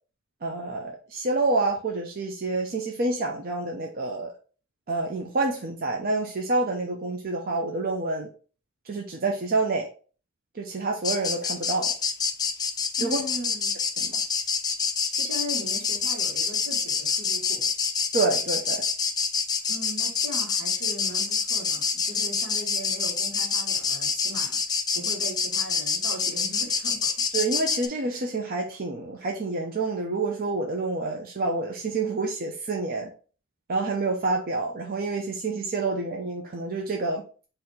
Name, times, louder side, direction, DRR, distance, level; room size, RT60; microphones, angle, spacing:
voice 1, 0.4-4.3 4.9-8.3 8.9-9.9 10.5-11.9 13.0-13.2 14.0-14.2 18.1-18.8 27.3-33.1 33.7-37.2, right 3 dB, 45° right, 0.6 m, -28 dB
sound 1, 11.0-27.9, left 5 dB, 20° left, 0.4 m, -27 dB
voice 2, 13.0-13.7 15.1-17.7 19.7-24.6 24.9-27.2, equal, 80° right, 1.5 m, -39 dB
4.1 x 2.6 x 4.2 m
head